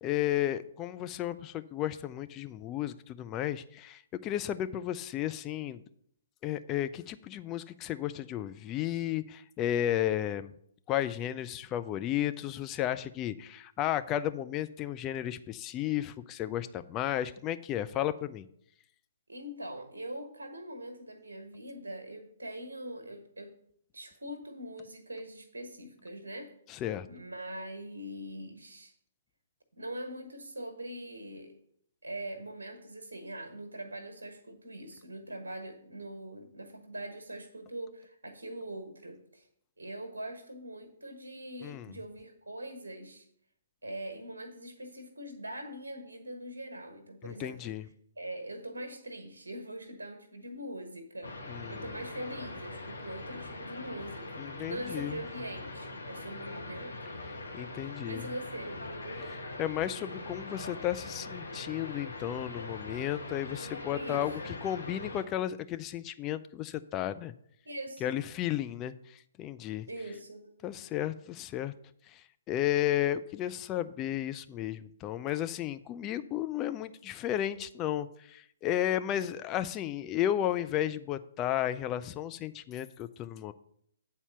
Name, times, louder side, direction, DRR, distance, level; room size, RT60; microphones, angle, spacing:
voice 1, 0.0-5.8 6.4-10.5 10.9-18.4 26.7-27.1 41.6-41.9 47.2-47.8 51.5-51.9 54.4-55.2 57.5-58.3 59.2-67.3 68.0-69.9 70.6-71.7 72.1-83.5, left 12 dB, 20° left, 10 dB, 0.4 m, -33 dB
voice 2, 19.3-23.5 23.9-26.5 27.1-28.9 29.8-31.6 32.0-39.4 39.8-43.3 43.8-47.7 48.2-51.3 51.7-57.0 58.0-58.8 59.2-59.3 63.9-64.6 67.6-68.2 69.9-70.5, right 1 dB, 70° right, 6 dB, 1.3 m, -42 dB
sound 1, 51.2-65.2, left 2 dB, 70° left, 1.2 m, -42 dB
8.6 x 4.2 x 6.8 m, 0.68 s
figure-of-eight pair, 125°, 0 cm